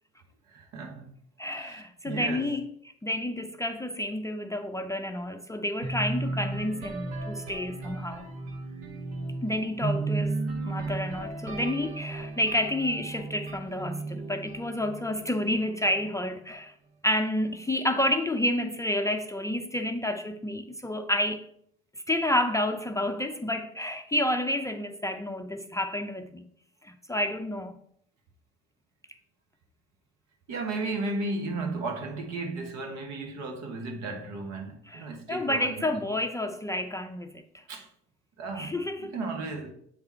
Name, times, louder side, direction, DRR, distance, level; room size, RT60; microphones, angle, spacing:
voice 1, 0.5-1.1 1.5-2.5 30.5-36.1 37.7-37.9 38.4-39.7, right 3 dB, 60° right, 1.4 m, -35 dB
voice 2, 1.4-2.7 3.0-8.2 9.4-10.4 10.7-16.7 17.0-21.5 22.1-26.4 26.8-27.8 34.9-37.4 38.6-39.2, left 1 dB, 10° left, 0.5 m, -30 dB
sound 1, 5.8-15.6, right 3 dB, 85° right, 1.3 m, -34 dB
7.8 x 3.6 x 4.4 m
hypercardioid pair, 65°, 31 cm